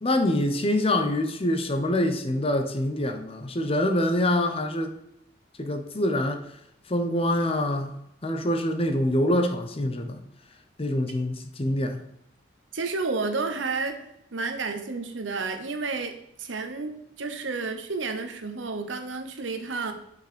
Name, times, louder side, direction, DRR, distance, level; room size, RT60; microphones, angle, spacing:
voice 1, 0.0-4.9 5.6-6.4 6.9-10.2 10.8-12.0, left 1 dB, 30° left, 7 dB, 0.8 m, -25 dB
voice 2, 12.7-14.0 14.3-19.9, right 4 dB, 80° right, 6 dB, 1.0 m, -31 dB
6.7 x 5.3 x 5.1 m, 0.76 s
head